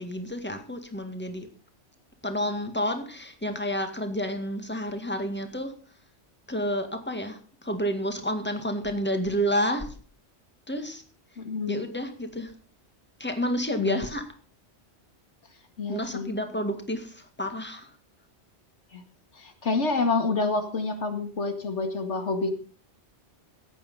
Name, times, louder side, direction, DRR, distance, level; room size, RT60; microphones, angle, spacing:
voice 1, 0.0-1.5 2.2-5.7 6.5-9.9 10.7-11.0 11.7-12.5 13.2-14.2 15.9-17.9, equal, 10° left, 6 dB, 1.9 m, -30 dB
voice 2, 11.4-11.9 13.8-14.0 15.8-16.3 18.9-19.0 19.3-22.5, left 3 dB, 85° left, 6 dB, 2.4 m, -28 dB
16.0 x 8.7 x 5.5 m, 0.41 s
omnidirectional pair, 1.2 m